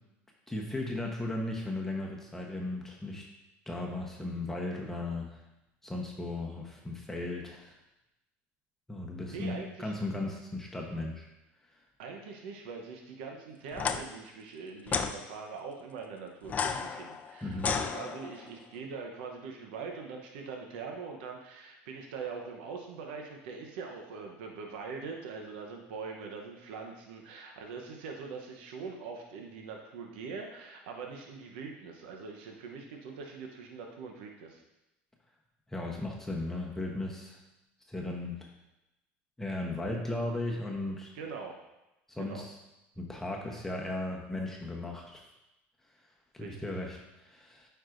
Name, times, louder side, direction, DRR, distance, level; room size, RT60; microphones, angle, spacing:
voice 1, 0.5-3.2 3.7-5.4 5.8-7.7 8.9-11.2 17.4-17.7 35.7-37.4 37.9-38.5 39.4-41.1 42.1-42.6 43.0-45.2 46.3-47.7, left 2 dB, 5° left, -1 dB, 1.0 m, -36 dB
voice 2, 9.3-9.9 12.0-34.6 41.1-41.6 42.2-42.5 46.4-46.8, right 5 dB, 80° right, 2 dB, 0.8 m, -42 dB
sound 1, 13.7-14.0 14.9-15.1 16.5-18.5, left 6 dB, 30° left, 0.5 m, -32 dB
9.1 x 4.6 x 2.6 m, 0.95 s
supercardioid pair, 100°, 6 cm